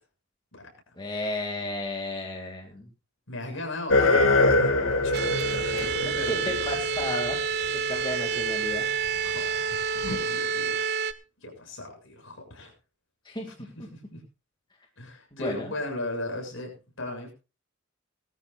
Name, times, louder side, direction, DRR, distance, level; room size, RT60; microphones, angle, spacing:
voice 1, 1.0-2.9 5.7-7.4 7.9-8.9 13.2-13.5 15.3-15.7, left 1 dB, 25° left, 0 dB, 2.4 m, -33 dB
voice 2, 3.3-5.6 6.0-6.8 9.2-10.9 11.4-12.7 13.6-14.2 15.0-17.3, left 1 dB, 70° left, 2 dB, 7.0 m, -38 dB
sound 1, 3.9-8.0 9.1-9.2 10.0-10.2, left 2 dB, 85° left, 2.0 m, -24 dB
sound 2, 5.1-11.1, right 5 dB, 55° right, 1.0 m, -28 dB
20.0 x 13.5 x 2.5 m, 0.31 s
head